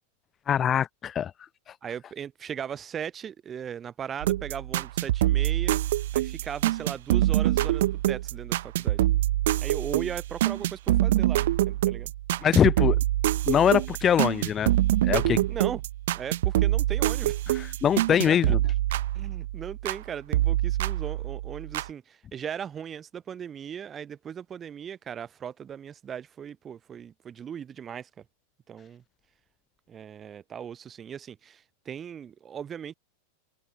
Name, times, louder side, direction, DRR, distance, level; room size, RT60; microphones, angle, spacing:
voice 1, 0.5-1.3 1.7-1.8 12.4-13.0 13.5-14.7 15.0-15.4 17.5-18.6, left 9 dB, 25° left, 1.2 m, -23 dB
voice 2, 1.8-9.0 9.6-12.1 15.5-15.8 16.1-17.4 18.1-18.6 19.1-28.2 28.7-29.0 29.9-32.9, right 8 dB, 25° right, 5.3 m, -38 dB
sound 1, 4.2-20.0 20.3-21.9, right 14 dB, 55° right, 0.4 m, -25 dB
figure-of-eight pair, 90°, 0 cm